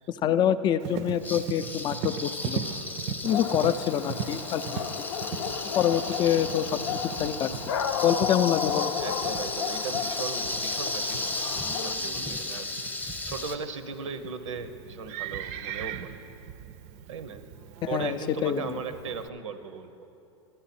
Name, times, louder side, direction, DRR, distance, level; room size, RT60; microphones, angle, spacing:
voice 1, 0.1-2.6 3.2-4.8 5.7-7.5 8.0-8.9 17.9-18.7, left 9 dB, 30° left, 11 dB, 0.4 m, -26 dB
Livestock farm animals working animals, 0.8-19.3, right 8 dB, 45° right, 0.5 m, -40 dB
sound 1, 1.2-13.6, left 2 dB, 10° left, 0.8 m, -35 dB
voice 2, 2.6-3.4 5.4-5.7 9.0-11.4 11.8-16.2 17.1-17.4 17.9-20.1, right 5 dB, 85° right, 11 dB, 0.8 m, -38 dB
Dog, 3.3-12.0, left 8 dB, 80° left, 0.5 m, -33 dB
12.5 x 10.5 x 4.2 m, 2.8 s
hypercardioid pair, 110°, 16 cm